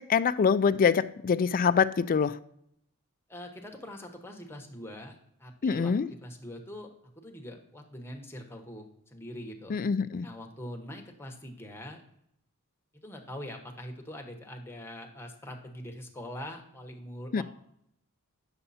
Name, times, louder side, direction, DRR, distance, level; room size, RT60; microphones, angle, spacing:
voice 1, 0.0-2.4 5.6-6.1 9.7-10.3 17.3-17.4, left 6 dB, 40° left, 0.3 m, -25 dB
voice 2, 3.3-6.9 7.2-9.8 10.2-12.0 13.0-17.4, left 1 dB, 10° left, 1.1 m, -43 dB
9.7 x 6.8 x 4.2 m
head